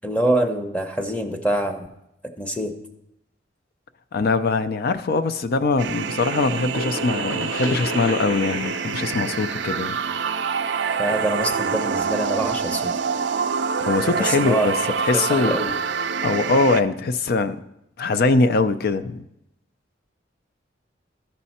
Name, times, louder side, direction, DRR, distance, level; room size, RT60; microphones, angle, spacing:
voice 1, 0.0-1.9 2.4-2.7 11.0-12.9 14.2-14.7 15.1-15.7, right 1 dB, 5° left, 0.7 m, -25 dB
voice 2, 4.1-10.0 13.8-14.7 15.0-15.6 16.2-17.6 18.0-19.3, left 3 dB, 55° left, 0.5 m, -22 dB
sound 1, 5.8-16.8, right 6 dB, 65° right, 0.4 m, -26 dB
sound 2, 6.3-11.9, left 1 dB, 75° left, 1.1 m, -35 dB
13.5 x 5.4 x 4.2 m
head